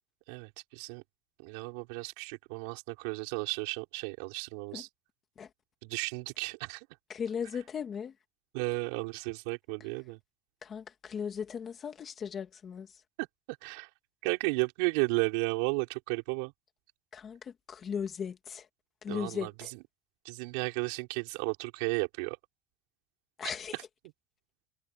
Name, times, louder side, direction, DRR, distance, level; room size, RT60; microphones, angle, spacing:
voice 1, 0.3-1.0 1.4-4.9 5.8-6.9 8.5-10.2 13.2-13.3 13.6-13.9 14.2-16.5 19.1-19.5 20.3-22.4, right 30 dB, 70° right, 5.2 m, -33 dB
voice 2, 7.1-8.2 10.6-13.0 17.1-18.7 19.0-19.7 23.4-23.8, left 7 dB, 25° left, 2.2 m, -37 dB
cardioid pair, 175°, 0 cm